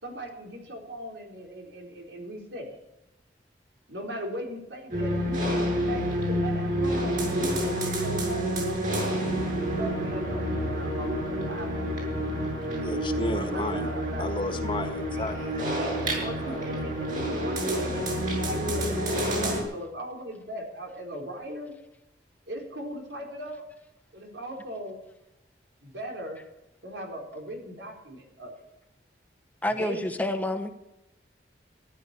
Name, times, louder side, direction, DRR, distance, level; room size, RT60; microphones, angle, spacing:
voice 1, 0.0-2.7 3.9-8.7 9.8-10.4 10.7-11.9 13.1-14.6 15.7-21.7 22.5-23.6 24.1-25.0 25.8-26.4 26.8-28.5 29.8-30.2, right 1 dB, 90° right, 2 dB, 4.3 m, -39 dB
sound 1, 4.9-19.6, equal, 50° right, 6.7 m, -28 dB
voice 2, 12.8-13.9 14.2-15.6 15.9-16.7, left 1 dB, 30° left, 7 dB, 1.7 m, -34 dB
voice 3, 29.6-30.7, left 1 dB, 10° left, 5 dB, 1.1 m, -28 dB
14.5 x 11.5 x 6.8 m, 0.90 s
head